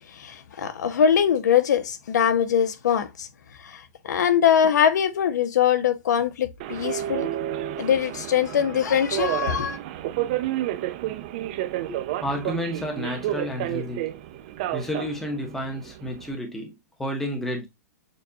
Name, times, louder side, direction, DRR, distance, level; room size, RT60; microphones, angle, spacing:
voice 1, 0.1-3.3 3.6-7.3 7.8-9.8, left 8 dB, 90° left, 0.8 m, -22 dB
Subway metro underground, 6.6-16.3, right 13 dB, 35° right, 0.4 m, -31 dB
voice 2, 11.9-14.1 14.7-17.7, left 1 dB, 5° left, 0.7 m, -31 dB
6.7 x 2.3 x 2.7 m
supercardioid pair, 170°, 9 cm